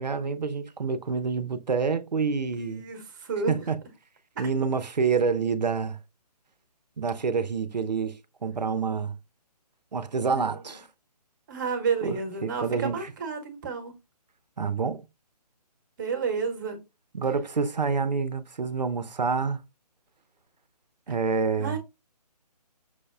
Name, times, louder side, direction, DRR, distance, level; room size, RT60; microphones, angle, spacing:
voice 1, 0.0-2.8 3.5-3.8 4.4-6.0 7.0-9.2 9.9-10.8 12.0-13.1 14.6-15.0 17.1-19.6 21.1-21.8, right 5 dB, 80° right, 0.6 m, -27 dB
voice 2, 2.5-3.6 10.3-10.5 11.5-13.9 16.0-16.8 21.6-21.8, right 5 dB, 30° right, 0.8 m, -31 dB
6.1 x 2.1 x 2.3 m
figure-of-eight pair, 145°, 21 cm